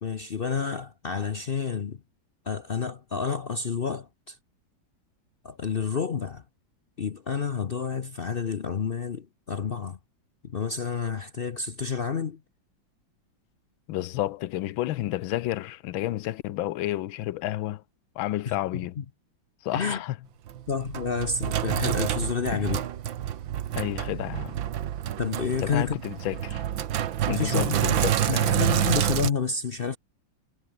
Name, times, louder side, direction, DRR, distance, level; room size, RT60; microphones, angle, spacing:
voice 1, 0.0-2.0 2.5-4.4 5.4-6.4 7.0-10.0 10.4-12.4 18.5-18.6 19.0-19.1 19.7-20.0 20.7-22.8 25.2-26.0 27.3-30.0, left 6 dB, 55° left, 0.6 m, -29 dB
voice 2, 13.9-17.8 18.2-19.0 19.6-20.1 22.5-22.7 23.8-24.6 25.6-26.6 27.3-28.6, left 15 dB, 85° left, 1.5 m, -31 dB
Sink (filling or washing), 20.5-29.3, right 10 dB, 80° right, 1.9 m, -28 dB
omnidirectional pair, 2.1 m